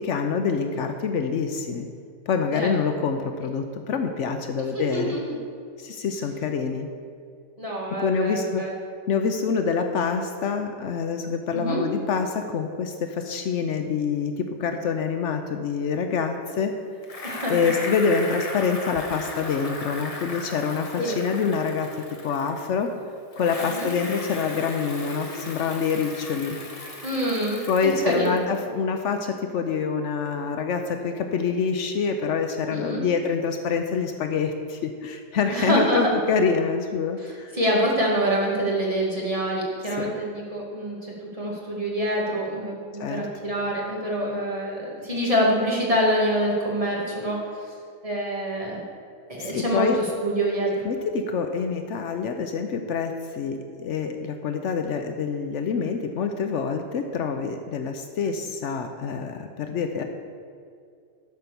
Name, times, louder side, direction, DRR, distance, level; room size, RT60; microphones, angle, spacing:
voice 1, 0.0-1.9 2.3-5.2 5.8-6.9 7.9-8.6 9.1-16.8 17.5-21.9 22.2-22.9 23.4-26.6 27.7-37.5 40.0-40.1 43.0-43.2 49.4-50.0 50.8-60.0, left 5 dB, 75° left, 6 dB, 1.0 m, -26 dB
voice 2, 4.8-5.4 7.6-8.7 11.5-11.8 17.2-17.5 20.9-21.2 23.6-23.9 27.0-27.6 28.0-28.3 32.7-33.0 35.5-36.1 37.2-41.0 41.3-47.4 48.0-48.8 49.3-50.8, equal, 30° right, -3 dB, 2.2 m, -26 dB
Bicycle, 17.0-22.9 23.3-28.6, left 2 dB, 30° left, 1.0 m, -37 dB
11.5 x 5.8 x 6.8 m, 2.3 s
omnidirectional pair, 1.3 m